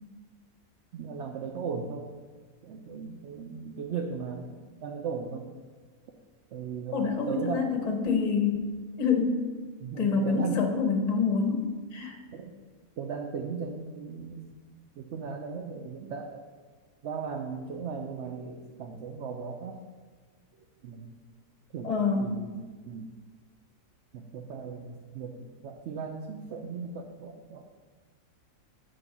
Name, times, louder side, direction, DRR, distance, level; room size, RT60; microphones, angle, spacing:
voice 1, 0.9-2.1 2.6-5.5 6.5-7.8 9.8-10.7 12.3-12.5 13.0-14.6 15.0-16.4 17.0-19.8 20.8-21.1 21.7-23.1 24.1-25.3 25.6-27.6, right 5 dB, 70° right, 3 dB, 0.7 m, -37 dB
voice 2, 6.9-8.6 9.0-9.4 10.0-11.6 11.9-12.1 21.8-22.4, left 5 dB, 35° left, 2 dB, 0.7 m, -26 dB
7.6 x 3.2 x 5.9 m, 1.4 s
omnidirectional pair, 1.7 m